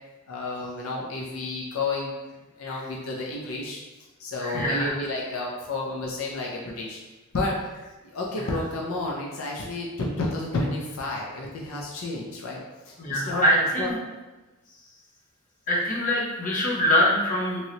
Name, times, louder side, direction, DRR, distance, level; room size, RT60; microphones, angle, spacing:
voice 1, 0.3-2.1 2.6-3.8 4.2-7.0 7.3-7.6 8.1-12.6 12.8-13.4 13.8-13.9, left 2 dB, 80° left, -2 dB, 0.5 m, -31 dB
voice 2, 4.4-4.9 13.0-14.0 15.7-17.6, equal, 40° left, -5 dB, 0.8 m, -23 dB
3.0 x 2.7 x 2.8 m, 1.1 s
head